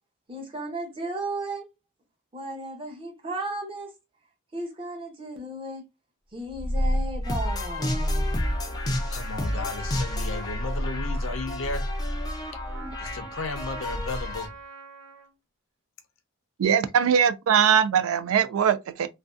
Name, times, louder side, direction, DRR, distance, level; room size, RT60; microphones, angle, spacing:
voice 1, 0.3-1.6 2.3-3.9 4.5-5.8 6.3-8.4, right 2 dB, 25° right, 0.7 m, -35 dB
Purr, 6.5-14.5, equal, 50° right, 1.0 m, -31 dB
sound 1, 7.2-14.5, left 1 dB, 20° left, 0.3 m, -33 dB
Trumpet, 8.4-15.3, right 4 dB, 70° right, 0.8 m, -45 dB
voice 2, 9.1-11.9 13.0-14.5, left 3 dB, 70° left, 0.5 m, -34 dB
voice 3, 16.6-19.1, right 8 dB, 85° right, 0.3 m, -21 dB
2.6 x 2.2 x 2.3 m
head